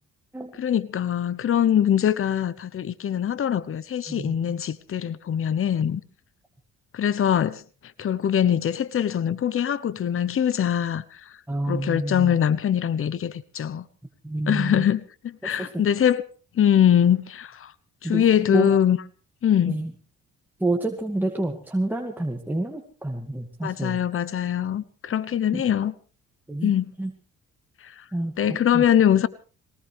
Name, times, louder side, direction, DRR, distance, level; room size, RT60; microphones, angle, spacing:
voice 1, 0.6-6.0 6.9-7.6 8.0-11.3 11.7-13.9 14.5-16.2 16.5-17.7 18.0-19.0 19.4-19.8 23.6-25.9 26.6-26.9 27.8-28.0 28.4-29.3, left 9 dB, 45° left, 1.0 m, -23 dB
voice 2, 4.1-4.4 11.5-12.3 14.2-14.8 15.4-15.5 18.0-18.7 19.7-19.9 20.6-24.0 25.5-25.6 26.5-26.7 27.0-27.1 28.1-28.8, right 2 dB, 5° right, 2.2 m, -28 dB
22.0 x 19.0 x 3.4 m
cardioid pair, 90°, 30 cm